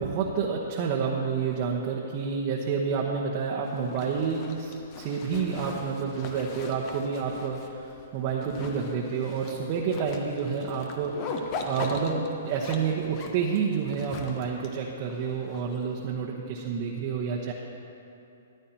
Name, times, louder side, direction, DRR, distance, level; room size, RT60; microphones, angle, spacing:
voice 1, 0.0-11.4 11.7-17.5, right 6 dB, 45° right, -2 dB, 1.0 m, -29 dB
Zipper (clothing), 3.6-16.1, left 4 dB, 40° left, 1.0 m, -41 dB
14.0 x 11.5 x 2.9 m, 2.8 s
hypercardioid pair, 135°, 0 cm